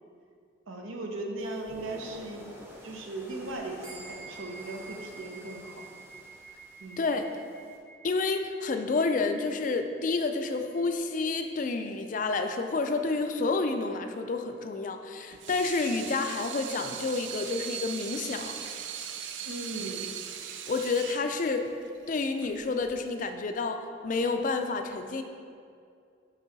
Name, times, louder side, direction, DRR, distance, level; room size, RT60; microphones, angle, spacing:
voice 1, 0.7-2.5 2.8-5.8 6.8-7.2 19.5-20.1, right 2 dB, 85° right, 2 dB, 0.8 m, -38 dB
sound 1, 1.4-7.8, equal, 10° right, 0.6 m, -50 dB
sound 2, 3.8-13.6, right 4 dB, 35° right, 1.4 m, -51 dB
voice 2, 8.0-18.6 20.7-21.7 22.1-25.2, left 3 dB, 40° left, 7 dB, 0.4 m, -29 dB
Water tap faucet / Sink (filling or washing), 15.2-23.3, right 8 dB, 65° right, 0.4 m, -39 dB
6.1 x 5.4 x 4.0 m, 2.4 s
head